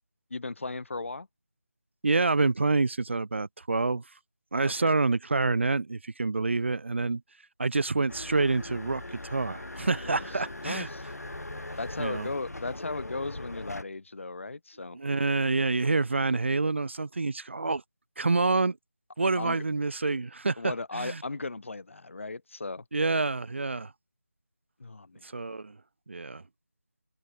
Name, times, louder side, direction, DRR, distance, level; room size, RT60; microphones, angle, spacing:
voice 1, 0.3-1.3 4.6-4.9 10.0-10.3 10.6-11.0 11.8-15.0 19.4-19.6 20.6-23.2 24.8-25.4, left 3 dB, 55° left, 1.2 m, -36 dB
voice 2, 2.0-4.0 4.5-7.2 7.6-10.9 12.0-12.3 14.9-17.8 18.2-18.8 19.2-21.2 22.9-23.9 25.2-25.8 26.1-26.4, right 3 dB, 50° right, 0.4 m, -27 dB
sound 1, 8.1-13.8, left 2 dB, 85° left, 3.5 m, -40 dB
figure-of-eight pair, 170°, 8 cm